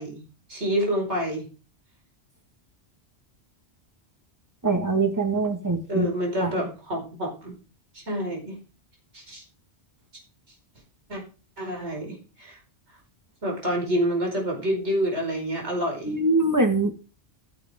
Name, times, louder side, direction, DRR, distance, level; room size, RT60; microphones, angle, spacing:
voice 1, 0.0-1.5 5.9-7.5 7.9-8.6 9.1-9.4 11.1-11.2 11.6-12.6 13.4-16.1, equal, 75° right, 0 dB, 5.4 m, -28 dB
voice 2, 4.6-6.1 6.4-6.6 16.0-16.9, right 2 dB, 15° right, 5 dB, 1.7 m, -23 dB
14.0 x 9.8 x 3.7 m, 0.35 s
omnidirectional pair, 1.2 m